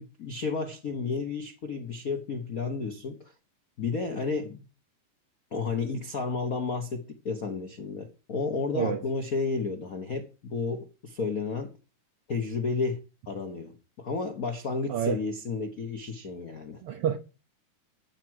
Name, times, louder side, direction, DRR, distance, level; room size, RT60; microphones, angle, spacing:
voice 1, 0.0-3.2 3.8-4.6 5.5-11.7 12.3-13.0 13.3-16.8, left 4 dB, 80° left, 0.7 m, -32 dB
voice 2, 14.9-15.2 16.8-17.2, right 8 dB, 85° right, 1.2 m, -28 dB
14.0 x 4.8 x 7.9 m
omnidirectional pair, 3.5 m